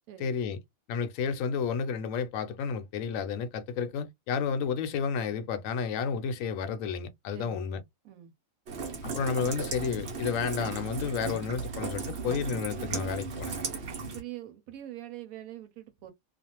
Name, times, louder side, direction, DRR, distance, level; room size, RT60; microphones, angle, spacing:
voice 1, 0.2-0.6 0.9-7.8 9.0-13.6, left 6 dB, 75° left, 1.0 m, -31 dB
voice 2, 7.3-7.6 8.0-8.3 14.0-16.1, right 13 dB, 85° right, 1.1 m, -43 dB
Rain, 8.7-14.2, right 4 dB, 55° right, 1.0 m, -36 dB
2.5 x 2.3 x 2.8 m
omnidirectional pair, 1.4 m